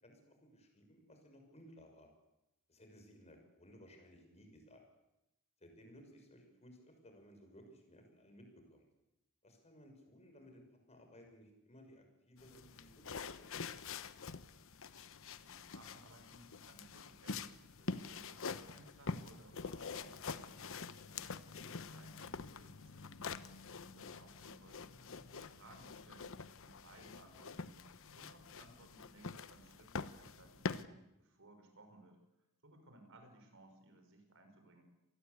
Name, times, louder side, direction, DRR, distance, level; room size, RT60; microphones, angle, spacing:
voice 1, 0.0-2.1 2.7-4.8 5.6-8.9 9.4-13.8, equal, 30° left, 4 dB, 6.2 m, -60 dB
sound 1, 12.4-30.8, left 4 dB, 65° left, 1.0 m, -46 dB
voice 2, 15.4-20.8 21.1-23.1 23.6-26.3 26.6-32.2 32.6-34.8, right 1 dB, 65° right, 6 dB, 6.0 m, -61 dB
26.5 x 20.0 x 8.3 m, 0.88 s
head